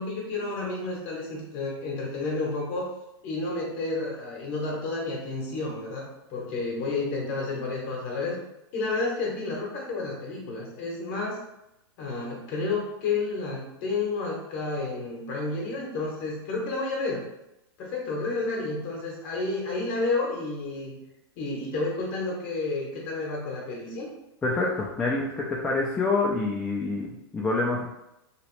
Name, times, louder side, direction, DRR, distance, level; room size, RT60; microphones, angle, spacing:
voice 1, 0.0-2.9 3.2-8.4 8.7-11.4 12.0-17.3 17.8-21.0 21.4-24.1, left 3 dB, 35° left, -2 dB, 0.9 m, -31 dB
voice 2, 24.4-27.9, left 3 dB, 10° left, -3 dB, 0.3 m, -27 dB
3.0 x 2.9 x 3.0 m, 0.88 s
hypercardioid pair, 150°, 13 cm